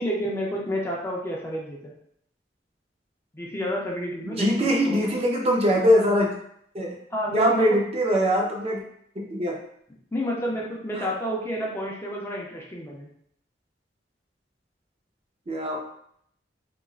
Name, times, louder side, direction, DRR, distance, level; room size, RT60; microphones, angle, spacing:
voice 1, 0.0-1.9 3.3-5.0 7.1-7.7 10.1-13.1, equal, 15° left, -3 dB, 0.5 m, -30 dB
voice 2, 4.2-6.4 6.7-7.0 7.3-8.8 9.2-9.6 11.0-11.1 15.5-15.8, equal, 35° right, -1 dB, 0.5 m, -22 dB
3.0 x 2.5 x 2.3 m, 0.69 s
head